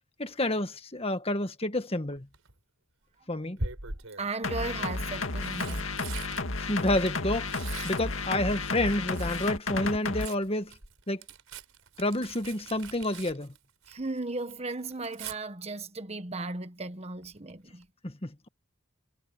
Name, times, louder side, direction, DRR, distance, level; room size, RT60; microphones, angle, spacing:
voice 1, 0.2-2.3 3.3-3.6 6.7-10.7 11.1-11.2 12.0-13.5 18.0-18.5, left 1 dB, 30° left, 1.7 m, -29 dB
Tearing, 2.1-2.5 3.6-4.3 5.1-9.6 9.9-14.2 14.5-15.4 17.2-17.5 17.8-17.9, right 3 dB, 85° right, 4.7 m, -42 dB
voice 2, 4.2-5.9 13.9-17.9, right 3 dB, 30° right, 1.3 m, -36 dB
sound 1, 4.4-10.3, left 3 dB, 70° left, 2.1 m, -32 dB
head